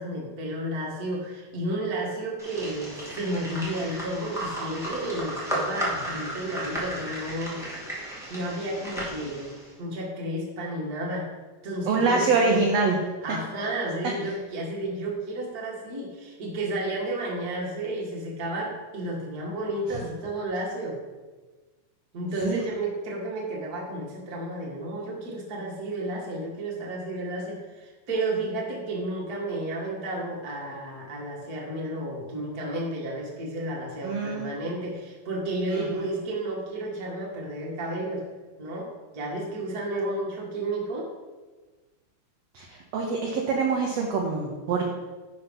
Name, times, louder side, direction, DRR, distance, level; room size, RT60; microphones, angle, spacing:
voice 1, 0.0-7.6 8.3-9.5 9.8-11.3 11.6-12.7 13.2-21.0 22.1-38.2 38.6-38.9 39.1-41.1, right 1 dB, 35° right, -3 dB, 1.8 m, -32 dB
sound 1, 2.4-9.7, right 1 dB, ahead, 1.3 m, -34 dB
voice 2, 11.9-13.0 22.4-22.6 34.0-34.5 35.7-36.1 42.5-42.7 42.9-44.8, right 4 dB, 70° right, 0 dB, 1.7 m, -25 dB
11.0 x 4.2 x 5.3 m, 1.3 s
omnidirectional pair, 3.8 m